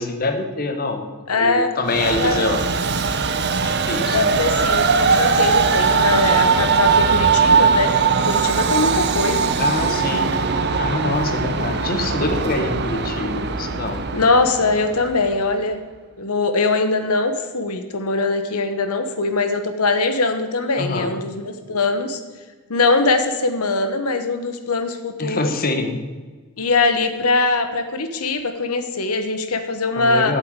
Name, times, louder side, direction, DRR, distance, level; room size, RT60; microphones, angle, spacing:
voice 1, 0.0-2.6 3.5-4.3 9.6-10.3 10.8-14.1 20.8-21.1 25.2-26.0 29.9-30.4, left 2 dB, 40° left, 6 dB, 1.2 m, -25 dB
voice 2, 1.3-1.7 2.2-2.6 4.1-7.9 8.2-9.5 11.3-11.6 14.1-15.8 16.2-22.2 22.7-25.5 26.6-30.4, left 3 dB, 85° left, 8 dB, 1.1 m, -21 dB
Train, 1.9-15.3, right 5 dB, 50° right, 0.8 m, -20 dB
8.9 x 8.1 x 8.8 m, 1.4 s
head